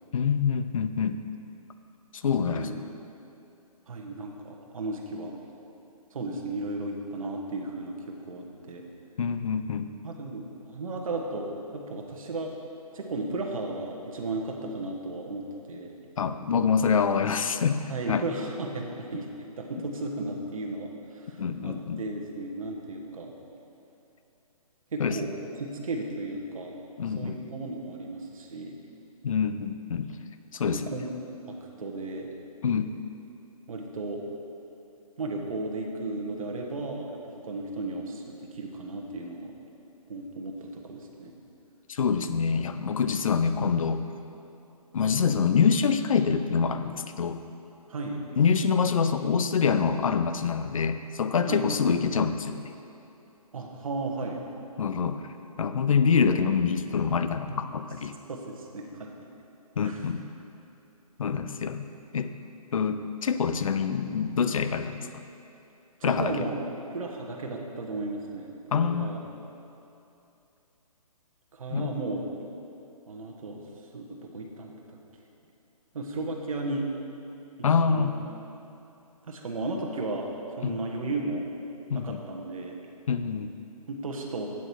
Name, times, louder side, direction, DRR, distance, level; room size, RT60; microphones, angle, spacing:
voice 1, 0.1-1.2 2.2-2.8 9.2-9.9 16.2-18.2 21.4-22.0 25.0-25.2 27.0-27.4 29.2-30.1 30.5-30.9 32.6-32.9 41.9-44.0 44.9-47.4 48.4-52.7 54.8-55.2 55.6-58.1 59.8-60.3 61.2-61.9 62.1-62.3 62.7-65.2 66.0-66.5 68.7-69.1 71.7-71.9 77.6-78.1 80.6-80.8 81.9-82.2 83.1-83.5, left 6 dB, 60° left, 10 dB, 0.5 m, -26 dB
voice 2, 2.4-2.7 3.9-5.3 6.1-8.8 10.0-12.5 12.9-15.9 17.9-23.3 24.9-26.7 27.1-28.7 30.5-31.1 31.4-32.3 33.7-34.2 35.2-39.5 40.1-41.3 47.9-48.2 51.5-51.7 53.5-54.4 58.3-59.1 59.8-60.1 66.0-66.5 66.9-69.2 71.5-72.2 73.1-73.6 73.9-75.0 75.9-76.9 77.6-78.1 79.2-81.4 81.9-82.8 83.9-84.5, right 2 dB, 60° right, 1 dB, 1.4 m, -35 dB
8.7 x 7.9 x 4.6 m, 2.8 s
hypercardioid pair, 160°, 19 cm